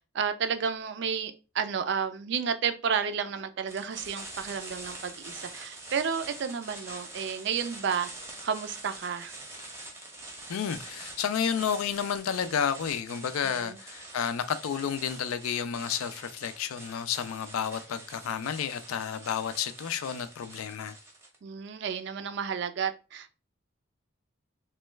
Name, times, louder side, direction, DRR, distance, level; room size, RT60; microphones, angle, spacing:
voice 1, 0.1-8.1 8.4-9.4 13.4-13.8 21.4-23.3, right 6 dB, 55° right, 0.3 m, -31 dB
sound 1, 3.7-21.4, right 2 dB, 15° right, 0.6 m, -45 dB
voice 2, 10.5-21.0, left 8 dB, 85° left, 0.4 m, -31 dB
3.1 x 2.2 x 3.1 m
head